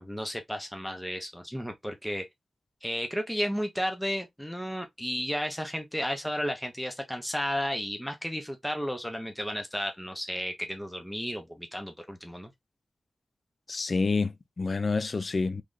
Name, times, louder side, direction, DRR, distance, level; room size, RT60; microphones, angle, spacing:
voice 1, 0.0-2.2 2.8-12.5, equal, 5° left, 0.7 m, -33 dB
voice 2, 13.7-15.6, left 4 dB, 50° left, 0.4 m, -28 dB
3.2 x 2.3 x 3.8 m
wide cardioid pair, 95°, 0 cm